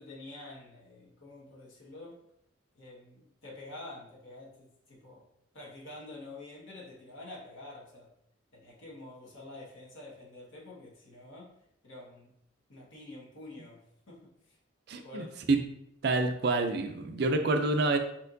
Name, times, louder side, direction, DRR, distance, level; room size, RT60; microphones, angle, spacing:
voice 1, 0.0-2.1 2.7-5.2 5.5-8.1 8.5-11.5 11.8-12.3 12.7-13.8 14.1-14.2 14.4-14.6 15.0-15.4, left 2 dB, 75° left, -5 dB, 1.3 m, -47 dB
voice 2, 14.9-15.6 16.0-18.0, right 2 dB, 55° right, 7 dB, 0.4 m, -28 dB
4.4 x 4.4 x 2.6 m, 0.76 s
head